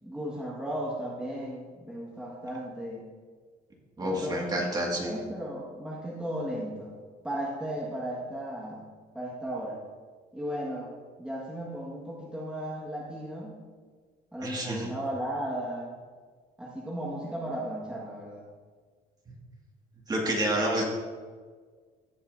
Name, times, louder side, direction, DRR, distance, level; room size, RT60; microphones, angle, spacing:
voice 1, 0.0-3.1 4.0-6.9 7.2-8.9 9.1-9.8 10.3-10.9 11.2-13.6 14.3-15.9 16.6-18.5, equal, 5° right, -5 dB, 1.5 m, -35 dB
voice 2, 4.0-5.1 14.4-14.9 20.1-20.8, right 1 dB, 25° right, -2 dB, 1.9 m, -29 dB
16.5 x 5.5 x 2.6 m, 1.5 s
cardioid pair, 110°, 17 cm